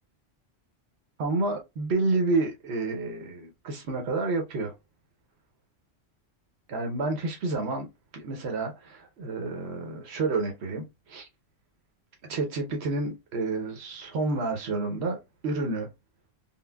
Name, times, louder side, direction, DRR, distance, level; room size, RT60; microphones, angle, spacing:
voice 1, 1.2-4.7 6.7-7.9 8.1-11.3 12.3-15.2 15.4-15.9, right 3 dB, 90° right, 1.0 m, -29 dB
5.5 x 2.0 x 2.2 m
omnidirectional pair, 1.1 m